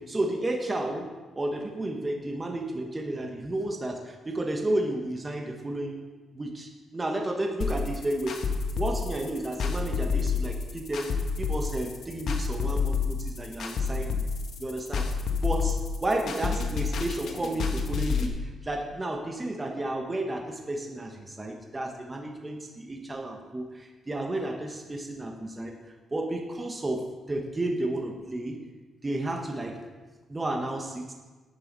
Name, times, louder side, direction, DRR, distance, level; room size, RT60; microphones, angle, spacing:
voice 1, 0.0-6.0 6.3-8.5 8.7-14.2 14.6-15.1 15.4-28.6 29.0-29.8 30.3-31.1, right 1 dB, 20° right, 1 dB, 1.3 m, -32 dB
sound 1, 7.6-18.3, left 5 dB, 65° left, 1.3 m, -29 dB
11.0 x 9.6 x 4.1 m, 1.3 s
cardioid pair, 115°, 0 cm